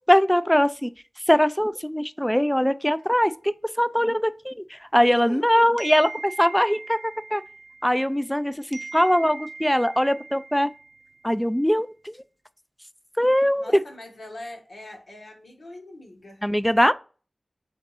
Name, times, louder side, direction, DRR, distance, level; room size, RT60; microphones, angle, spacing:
voice 1, 0.1-0.9 1.3-7.0 7.3-7.4 7.8-10.7 11.2-12.1 13.2-13.7 16.4-16.9, equal, 5° left, 0.3 m, -21 dB
voice 2, 5.2-5.7 13.5-16.4, left 1 dB, 75° left, 1.3 m, -41 dB
sound 1, 5.8-8.4 8.7-11.3, right 3 dB, 65° right, 0.4 m, -41 dB
3.6 x 3.6 x 4.1 m
wide cardioid pair, 65°, 0 cm